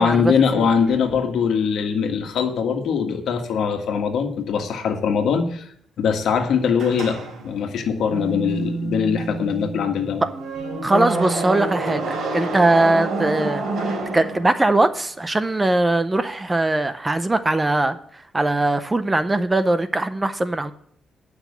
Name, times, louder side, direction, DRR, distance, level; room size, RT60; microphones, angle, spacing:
voice 1, 0.0-5.7 6.0-7.2 7.4-10.2, left 6 dB, 70° left, 4 dB, 1.7 m, -22 dB
sound 1, 6.8-14.8, right 3 dB, 60° right, 3.3 m, -28 dB
voice 2, 10.8-18.0 18.3-20.7, right 2 dB, 15° right, 11 dB, 0.5 m, -21 dB
10.0 x 6.0 x 8.3 m, 0.64 s
cardioid pair, 160°, 0 cm